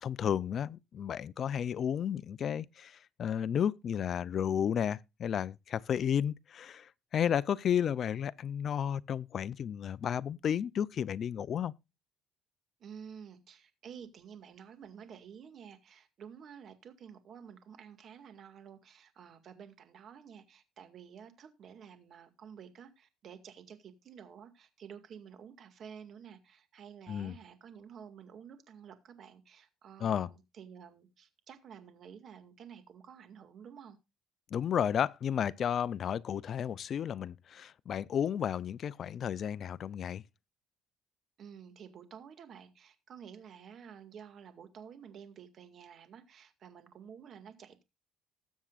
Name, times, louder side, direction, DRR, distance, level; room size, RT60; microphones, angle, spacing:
voice 1, 0.0-11.7 27.1-27.3 30.0-30.3 34.5-40.2, left 8 dB, 50° left, 0.5 m, -32 dB
voice 2, 12.8-34.0 41.4-47.8, right 7 dB, 55° right, 2.0 m, -51 dB
20.0 x 7.3 x 2.5 m
cardioid pair, 100°, 0 cm